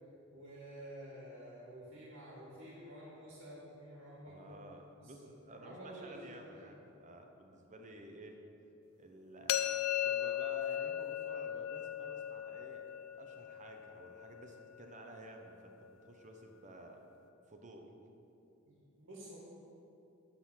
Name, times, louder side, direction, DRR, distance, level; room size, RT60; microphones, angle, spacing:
voice 1, 0.3-4.6 5.0-6.7 18.7-19.4, equal, 70° right, -6 dB, 2.2 m, -51 dB
voice 2, 4.3-8.4 9.0-9.7 10.0-12.9 13.2-17.0 17.5-17.9, right 2 dB, 35° right, 3 dB, 1.0 m, -53 dB
sound 1, 9.5-15.3, left 11 dB, 65° left, 0.4 m, -38 dB
12.0 x 4.1 x 7.4 m, 2.8 s
head